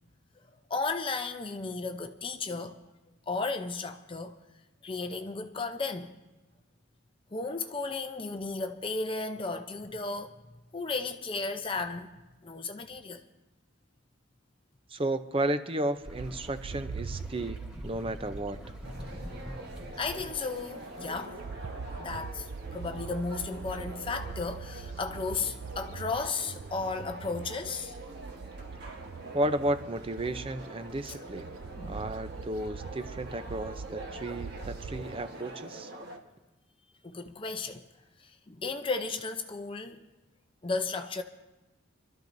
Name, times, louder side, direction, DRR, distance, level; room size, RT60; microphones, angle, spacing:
voice 1, 0.7-2.8 3.3-4.3 4.8-6.1 7.3-10.3 10.7-12.1 12.4-13.2 20.0-21.4 22.0-28.0 31.1-31.2 31.8-32.0 37.0-37.8 38.2-40.0 40.6-41.2, left 3 dB, 25° left, 0.6 m, -34 dB
voice 2, 14.9-18.6 29.3-31.5 31.9-35.9, right 1 dB, 25° right, 0.6 m, -33 dB
sound 1, 16.0-21.2, equal, 5° right, 1.9 m, -45 dB
Bird, 16.1-20.6 20.9-35.1, right 5 dB, 85° right, 0.5 m, -43 dB
sound 2, 18.8-36.2, right 2 dB, 50° right, 1.4 m, -45 dB
27.0 x 13.0 x 2.7 m
head